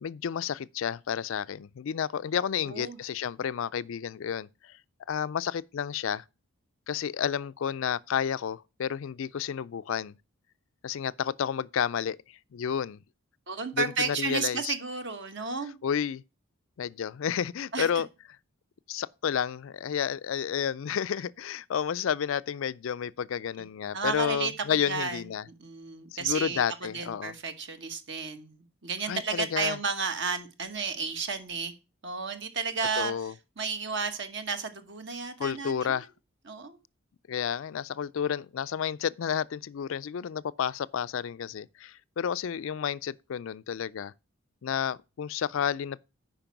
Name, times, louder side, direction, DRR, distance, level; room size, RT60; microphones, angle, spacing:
voice 1, 0.0-4.8 5.1-6.2 6.9-10.2 10.8-13.0 13.7-14.7 15.8-16.2 16.8-18.1 18.9-25.4 26.1-27.3 29.1-29.8 32.9-33.3 35.4-36.1 37.3-44.1 44.6-46.0, left 8 dB, 65° left, 0.4 m, -31 dB
voice 2, 2.6-3.0 13.5-15.8 17.7-17.9 23.9-24.5 24.8-26.6 26.9-31.8 32.0-36.0 36.5-36.8, right 5 dB, 55° right, 1.2 m, -32 dB
9.0 x 5.2 x 5.9 m
head